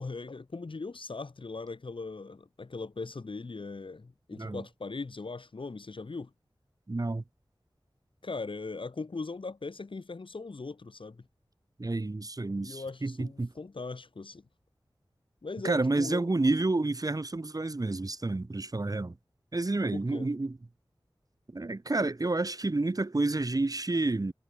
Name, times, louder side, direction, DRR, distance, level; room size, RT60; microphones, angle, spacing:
voice 1, 0.0-6.3 8.2-11.3 12.6-14.5 15.4-16.3 19.9-20.3, left 3 dB, 75° left, 4.5 m, -39 dB
voice 2, 6.9-7.2 11.8-13.5 15.6-19.2 19.5-20.6 21.5-24.3, right 2 dB, 45° right, 2.6 m, -29 dB
wide cardioid pair, 75°, 9 cm